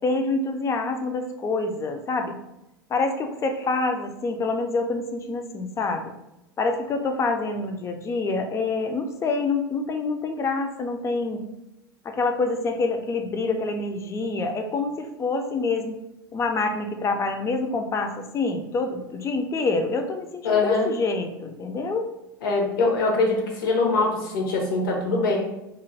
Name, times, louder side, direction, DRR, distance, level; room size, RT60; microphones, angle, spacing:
voice 1, 0.0-2.4 2.9-6.1 6.6-11.5 12.0-16.0 16.3-22.1, left 3 dB, 25° left, 6 dB, 0.4 m, -26 dB
voice 2, 20.4-20.9 22.4-25.4, left 3 dB, 70° left, 1 dB, 0.8 m, -23 dB
2.4 x 2.1 x 3.2 m, 0.92 s
hypercardioid pair, 85°, 12 cm